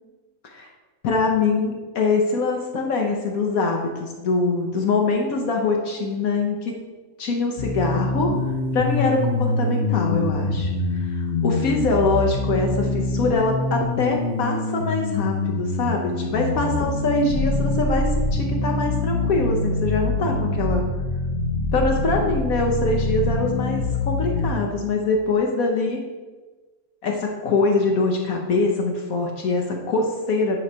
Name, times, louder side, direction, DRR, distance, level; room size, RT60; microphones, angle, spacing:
voice 1, 1.0-6.7 7.2-8.3 8.7-20.8 21.7-26.0 27.0-30.6, left 3 dB, 70° left, 1 dB, 1.3 m, -23 dB
sound 1, 7.6-24.5, left 2 dB, 50° left, 0.8 m, -24 dB
9.4 x 3.1 x 5.4 m, 1.3 s
omnidirectional pair, 1.6 m